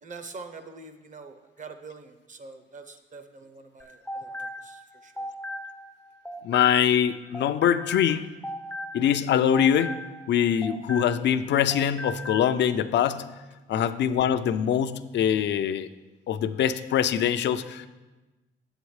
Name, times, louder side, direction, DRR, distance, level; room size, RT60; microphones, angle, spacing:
voice 1, 0.0-5.3, right 4 dB, 40° right, 9 dB, 0.7 m, -45 dB
sound 1, 3.8-7.1 7.3-11.4 11.7-12.5, left 1 dB, 5° left, 0.4 m, -38 dB
voice 2, 6.4-8.3 8.9-10.0 10.3-13.3 13.7-15.9 16.3-17.9, left 9 dB, 60° left, 12 dB, 0.4 m, -23 dB
8.1 x 7.9 x 3.2 m, 1.1 s
cardioid pair, 90°, 20 cm